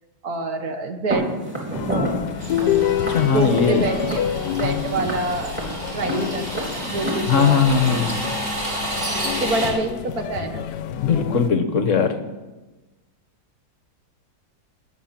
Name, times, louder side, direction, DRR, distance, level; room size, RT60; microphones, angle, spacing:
voice 1, 0.2-1.3 1.9-2.1 2.6-2.8 3.2-5.6 5.9-8.0 9.4-10.6, right 2 dB, 65° right, 5 dB, 1.8 m, -27 dB
Walk footsteps, 1.1-7.1, right 1 dB, 5° right, 3.5 m, -31 dB
sound 1, 1.7-11.5, left 10 dB, 90° left, 1.3 m, -28 dB
sound 2, 2.4-9.7, right 1 dB, 35° right, 4.1 m, -31 dB
voice 2, 3.1-3.9 7.3-8.2 11.0-12.1, left 6 dB, 55° left, 8 dB, 1.3 m, -19 dB
19.5 x 7.0 x 7.4 m, 1.2 s
omnidirectional pair, 1.7 m